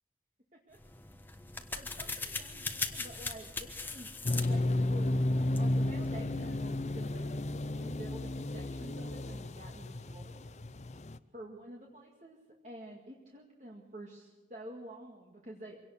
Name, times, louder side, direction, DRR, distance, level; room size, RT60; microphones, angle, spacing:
sound 1, 0.7-6.1, left 3 dB, 10° left, 1.2 m, -41 dB
voice 1, 1.7-5.3 5.6-10.5 11.3-12.4 12.6-15.8, right 1 dB, 40° right, -1 dB, 2.1 m, -49 dB
sound 2, 4.2-11.2, left 1 dB, 40° left, 0.6 m, -33 dB
24.5 x 17.5 x 6.6 m, 1.3 s
head